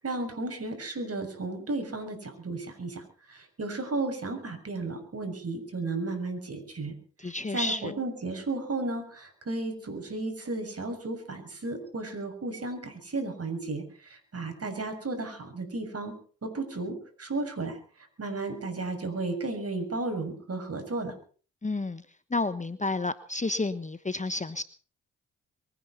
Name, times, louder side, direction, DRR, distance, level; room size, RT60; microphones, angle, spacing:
voice 1, 0.0-6.9 7.2-17.8 18.2-21.1, right 2 dB, 40° right, 6 dB, 6.8 m, -34 dB
voice 2, 7.2-7.9 21.6-22.0 22.3-24.6, left 3 dB, 20° left, 14 dB, 1.1 m, -30 dB
23.5 x 10.0 x 5.6 m, 0.42 s
supercardioid pair, 50°, 35 cm